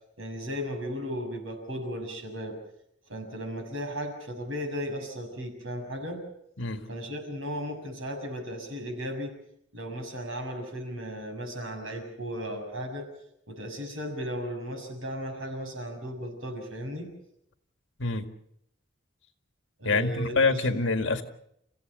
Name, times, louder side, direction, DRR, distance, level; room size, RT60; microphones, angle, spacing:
voice 1, 0.2-2.6 3.1-6.2 6.9-9.4 9.7-13.1 13.5-17.1 19.8-20.6, equal, 85° right, 4 dB, 6.7 m, -35 dB
voice 2, 19.8-21.2, left 3 dB, 70° left, 6 dB, 2.0 m, -25 dB
30.0 x 16.0 x 6.7 m, 0.74 s
head